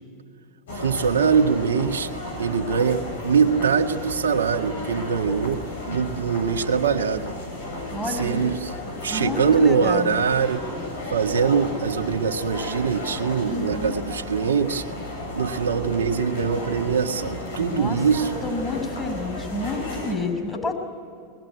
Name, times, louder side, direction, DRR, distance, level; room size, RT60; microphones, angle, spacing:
sound 1, 0.7-20.1, left 1 dB, 80° left, 7.1 m, -34 dB
voice 1, 0.7-2.1 2.4-7.4 8.1-8.7 9.0-10.6 11.1-14.8 15.3-18.4, right 6 dB, 90° right, 4 dB, 1.6 m, -23 dB
voice 2, 7.9-8.4 9.1-10.2 13.4-14.0 17.6-18.0 18.4-20.7, left 2 dB, 10° left, 4 dB, 5.6 m, -30 dB
23.0 x 21.0 x 9.5 m, 2.4 s
hypercardioid pair, 100°, 0 cm